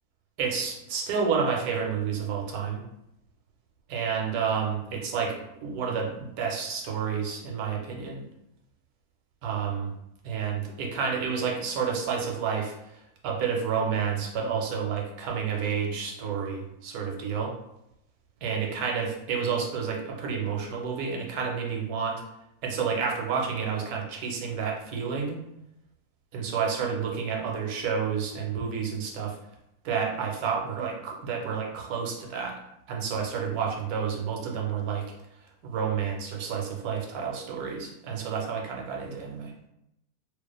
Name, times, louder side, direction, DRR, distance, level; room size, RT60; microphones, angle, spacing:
voice 1, 0.4-2.8 3.9-8.2 9.4-9.9 10.2-17.5 18.4-22.2 22.6-25.3 26.3-29.4 29.8-32.6 32.9-35.1 35.6-39.5, right 6 dB, 85° right, 0 dB, 1.1 m, -30 dB
2.3 x 2.3 x 2.2 m, 0.83 s
omnidirectional pair, 1.5 m